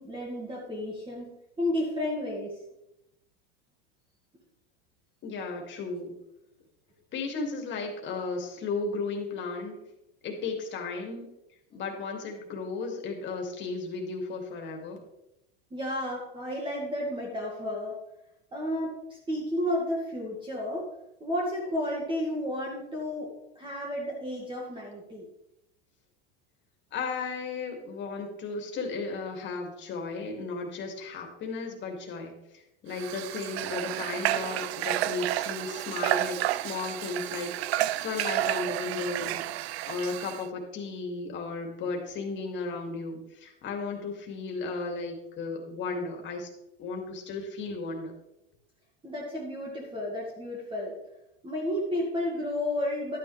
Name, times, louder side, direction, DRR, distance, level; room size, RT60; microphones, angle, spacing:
voice 1, 0.0-2.5 15.7-18.0 18.5-18.9 19.3-20.9 21.2-25.2 49.0-50.9 51.4-53.2, left 1 dB, 15° right, -3 dB, 2.2 m, -32 dB
voice 2, 5.2-6.1 7.1-9.8 10.2-11.3 11.7-15.0 26.9-39.4 39.8-46.5 46.8-48.1, left 4 dB, 35° left, 2 dB, 2.6 m, -35 dB
Water / Water tap faucet, 32.9-40.4, right 15 dB, 85° right, 0.5 m, -31 dB
12.0 x 9.3 x 3.4 m, 0.87 s
supercardioid pair, 120°, 31 cm